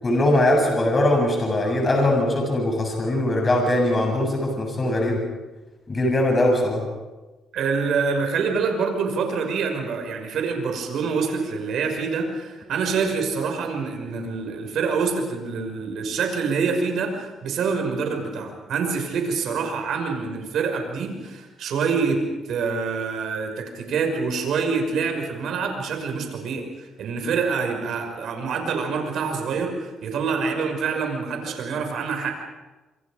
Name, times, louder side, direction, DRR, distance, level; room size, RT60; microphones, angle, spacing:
voice 1, 0.0-5.2 5.9-6.8, left 1 dB, 30° left, 1 dB, 7.7 m, -21 dB
voice 2, 7.5-22.2 22.5-32.3, right 5 dB, 75° right, 4 dB, 6.0 m, -26 dB
27.0 x 27.0 x 5.1 m, 1.2 s
cardioid pair, 90°, 0 cm